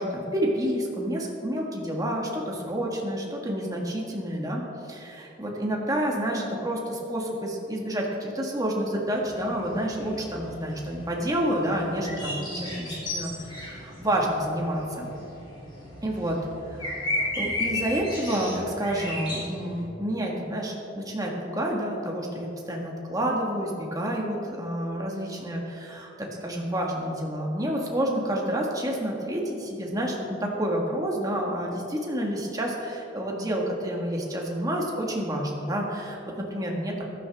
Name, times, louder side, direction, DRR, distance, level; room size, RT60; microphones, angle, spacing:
voice 1, 0.0-15.1 16.0-16.4 16.7-37.1, right 1 dB, 20° right, -1 dB, 1.7 m, -29 dB
sound 1, 9.2-19.8, left 1 dB, 25° left, 3.3 m, -35 dB
15.0 x 12.5 x 3.6 m, 3.0 s
head